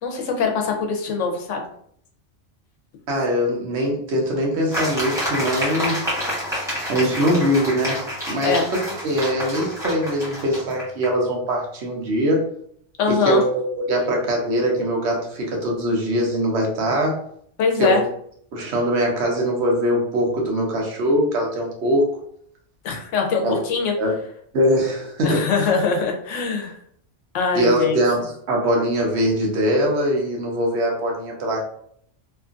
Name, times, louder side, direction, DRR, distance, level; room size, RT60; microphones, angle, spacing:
voice 1, 0.0-1.6 8.4-8.6 13.0-13.4 17.6-18.0 22.8-23.9 25.2-26.8 27.3-28.0, left 5 dB, 85° left, 3 dB, 1.0 m, -22 dB
voice 2, 3.1-6.1 6.9-12.4 13.1-17.2 17.8-18.1 18.5-22.2 23.4-23.6 24.0-24.1 24.5-25.5 27.5-31.6, equal, 70° right, 0 dB, 1.0 m, -22 dB
sound 1, 4.7-11.1, equal, 5° right, 0.8 m, -28 dB
2.9 x 2.4 x 2.4 m, 0.65 s
omnidirectional pair, 1.2 m